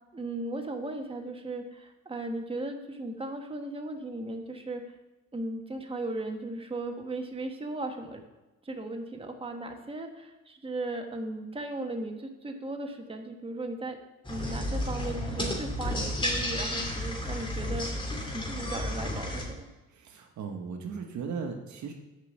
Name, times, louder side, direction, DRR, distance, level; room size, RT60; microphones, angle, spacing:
voice 1, 0.1-4.8 5.3-8.2 8.6-14.0 14.3-17.9 18.3-19.7, right 2 dB, 20° right, 4 dB, 1.4 m, -36 dB
sound 1, 14.2-19.4, left 1 dB, 15° left, 2.5 m, -32 dB
voice 2, 19.9-21.9, right 5 dB, 70° right, 4 dB, 1.4 m, -37 dB
8.2 x 5.4 x 7.3 m, 1.1 s
cardioid pair, 90°, 30 cm